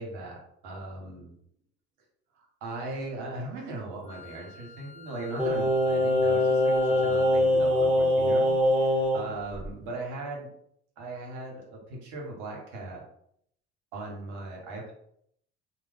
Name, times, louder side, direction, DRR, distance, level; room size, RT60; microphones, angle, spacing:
voice 1, 0.0-1.3 2.3-10.5 11.0-13.0 13.9-14.9, right 2 dB, 75° right, -1 dB, 1.1 m, -39 dB
Wind instrument woodwind instrument, 4.1-7.4, left 6 dB, 20° left, 0.6 m, -44 dB
Singing, 5.4-9.3 9.6-9.7, left 1 dB, 5° right, 1.1 m, -23 dB
2.7 x 2.0 x 3.4 m, 0.70 s
hypercardioid pair, 65°, 31 cm